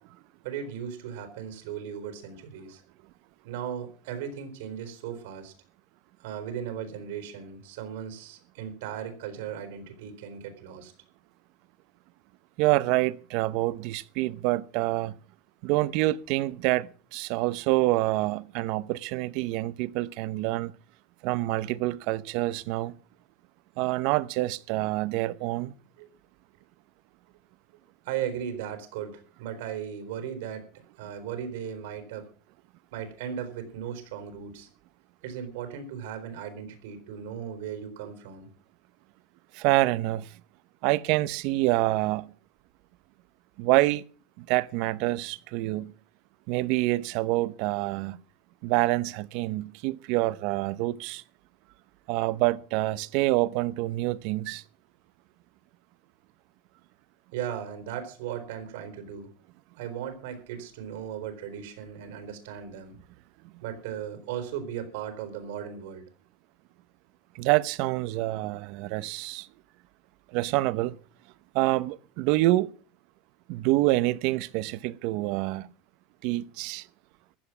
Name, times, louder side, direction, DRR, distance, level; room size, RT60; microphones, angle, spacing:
voice 1, 0.4-2.8 3.4-5.5 6.2-10.9 26.0-26.1 28.0-30.7 31.0-32.3 32.9-34.7 35.2-38.5 57.3-59.3 59.8-63.0 63.6-66.0, right 8 dB, 75° right, 4.1 m, -37 dB
voice 2, 12.6-15.2 15.6-20.7 21.2-23.0 23.8-25.7 39.5-40.3 40.8-42.3 43.6-44.0 44.4-45.9 46.5-48.2 48.6-51.2 52.1-54.6 67.3-69.5 70.3-71.0 71.5-72.7 73.5-75.7 76.2-76.9, right 18 dB, 50° right, 0.8 m, -26 dB
15.0 x 11.0 x 6.0 m
supercardioid pair, 165°, 0 cm